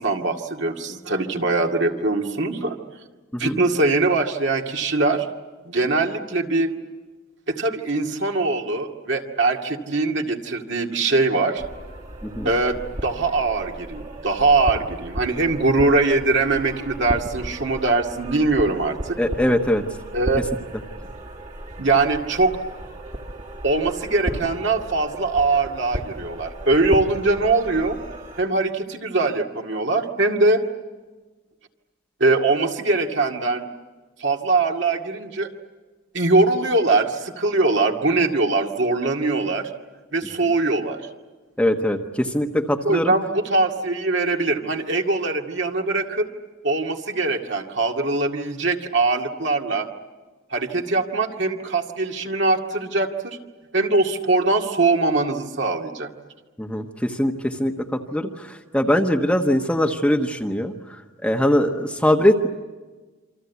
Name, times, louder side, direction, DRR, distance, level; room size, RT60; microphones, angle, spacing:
voice 1, 0.0-2.8 3.4-5.3 5.6-6.7 7.5-11.6 12.4-19.2 20.1-20.4 21.8-22.6 23.6-28.0 28.4-30.6 32.2-33.7 34.2-35.5 36.1-39.7 40.1-41.0 42.8-46.3 46.6-49.9 50.5-53.4 53.7-56.1, right 3 dB, 60° right, 2 dB, 2.2 m, -22 dB
sound 1, 11.6-28.4, right 1 dB, 40° right, 2.2 m, -35 dB
voice 2, 19.2-19.8 41.6-43.1 56.6-62.5, equal, 5° left, 3 dB, 1.2 m, -22 dB
28.0 x 25.5 x 8.3 m, 1.3 s
head